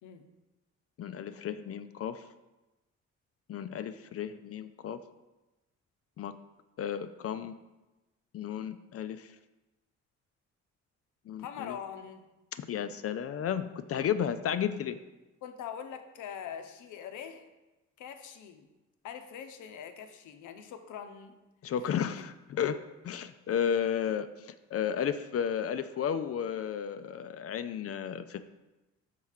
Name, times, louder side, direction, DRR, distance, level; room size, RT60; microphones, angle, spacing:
voice 1, 1.0-2.2 3.5-5.0 6.2-6.3 6.8-7.5 8.3-9.3 11.3-11.8 12.5-15.0 21.6-22.8 23.0-28.4, left 8 dB, 50° left, 11 dB, 0.5 m, -33 dB
voice 2, 11.4-12.2 15.4-17.5 18.0-18.7 19.0-21.4 24.0-24.1, left 8 dB, 80° left, 7 dB, 0.8 m, -43 dB
5.7 x 4.6 x 6.4 m, 1.1 s
cardioid pair, 90°, 30 cm